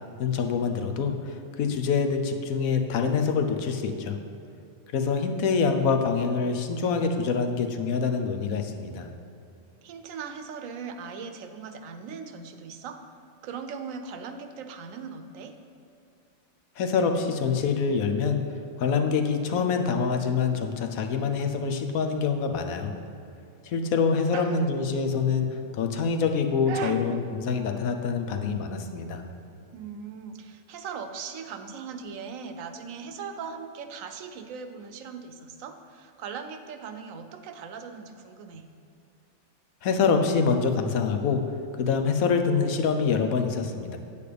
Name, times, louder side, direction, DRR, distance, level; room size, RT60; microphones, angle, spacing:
voice 1, 0.2-4.2 4.9-9.1 16.8-18.4 18.8-22.9 23.6-29.2 39.8-41.4 41.8-44.0, left 5 dB, 85° left, 6 dB, 1.1 m, -25 dB
voice 2, 9.8-13.1 13.4-15.5 24.3-24.7 26.7-27.1 29.7-38.7, right 6 dB, 75° right, 8 dB, 1.0 m, -39 dB
8.5 x 8.4 x 3.3 m, 2.6 s
omnidirectional pair, 1.4 m